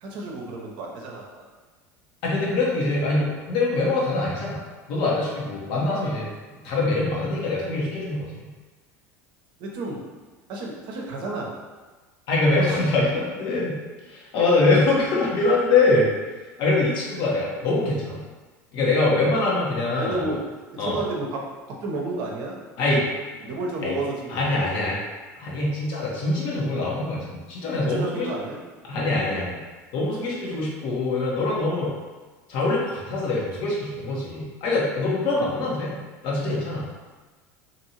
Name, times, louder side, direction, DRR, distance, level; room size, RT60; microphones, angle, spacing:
voice 1, 0.0-1.4 9.6-10.0 10.5-11.6 19.9-21.5 21.8-22.6 23.4-24.7 27.9-28.6, right 2 dB, 55° right, -1 dB, 0.7 m, -31 dB
voice 2, 2.2-4.6 4.9-6.3 6.6-8.5 12.3-13.8 14.0-16.1 16.6-18.2 18.7-20.3 20.8-21.0 22.8-23.1 23.8-24.0 24.3-25.0 25.4-28.3 28.8-29.6 29.9-31.9 32.5-36.0 36.2-36.8, left 2 dB, 60° left, -4 dB, 1.0 m, -23 dB
2.8 x 2.6 x 2.8 m, 1.3 s
hypercardioid pair, 80°, 9 cm